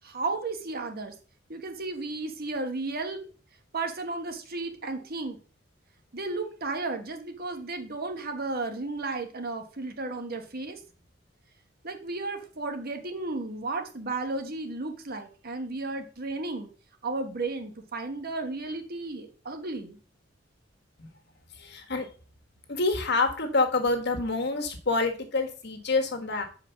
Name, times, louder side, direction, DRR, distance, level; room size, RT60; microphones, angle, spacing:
voice 1, 0.0-1.1 1.5-3.2 3.7-5.4 6.1-10.8 11.8-16.7 17.0-20.0, right 3 dB, 50° right, 6 dB, 1.4 m, -34 dB
voice 2, 21.5-22.1 22.7-26.4, left 3 dB, 60° left, 4 dB, 1.7 m, -27 dB
6.7 x 5.0 x 5.8 m, 0.39 s
head